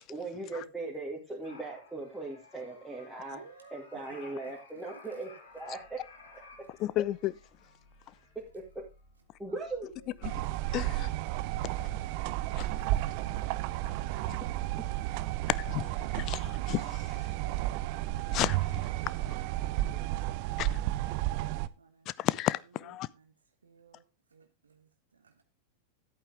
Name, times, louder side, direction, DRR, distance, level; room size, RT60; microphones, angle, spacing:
voice 1, 0.1-3.4 3.7-6.0 8.5-8.8 9.4-9.9 14.7-14.8, right 3 dB, 5° right, 2.3 m, -39 dB
sound 1, 1.4-8.5 8.8-8.9, left 3 dB, 60° left, 5.8 m, -55 dB
voice 2, 3.3-3.8 5.1-5.2 9.5-10.3 11.6-11.9 12.6-15.5 15.8-16.9 17.3-18.4 18.7-18.8 19.1-20.9 21.2-22.1 22.6-23.3 23.6-24.1 24.3-25.4, right 5 dB, 75° right, 0.9 m, -58 dB
sound 2, 5.4-10.7, left 1 dB, 90° left, 5.9 m, -62 dB
voice 3, 6.8-7.3 10.7-11.1 12.6-12.7 14.3-14.4 15.5-15.9 16.1-17.0 18.3-18.6 20.6-20.7 22.1-23.1, left 15 dB, 35° left, 0.5 m, -32 dB
sound 3, 10.2-21.7, right 15 dB, 45° right, 0.4 m, -32 dB
11.0 x 8.7 x 3.5 m
figure-of-eight pair, 90°, 0 cm